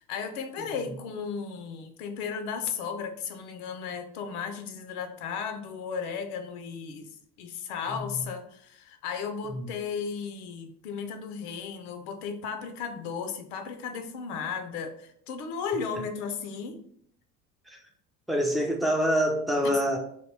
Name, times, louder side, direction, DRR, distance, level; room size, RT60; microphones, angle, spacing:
voice 1, 0.0-7.1 7.4-16.8 19.6-19.8, left 6 dB, 75° left, 7 dB, 0.7 m, -35 dB
voice 2, 7.9-8.2 9.5-9.7 17.7-17.8 18.3-20.0, equal, ahead, 1 dB, 0.3 m, -27 dB
3.0 x 2.3 x 3.3 m, 0.66 s
hypercardioid pair, 80°, 45 cm